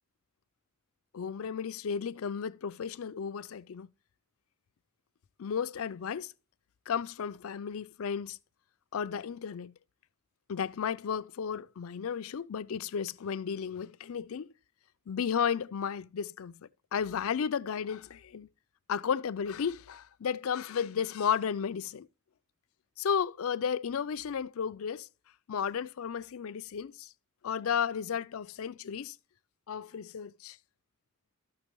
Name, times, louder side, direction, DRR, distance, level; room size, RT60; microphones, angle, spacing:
voice 1, 1.1-3.9 5.4-6.3 6.9-8.4 8.9-9.7 10.5-14.5 15.1-16.5 16.9-18.5 18.9-22.1 23.0-25.1 25.5-27.1 27.4-29.2 29.7-30.6, left 7 dB, 70° left, 0.4 m, -33 dB
13.5 x 6.0 x 3.0 m
head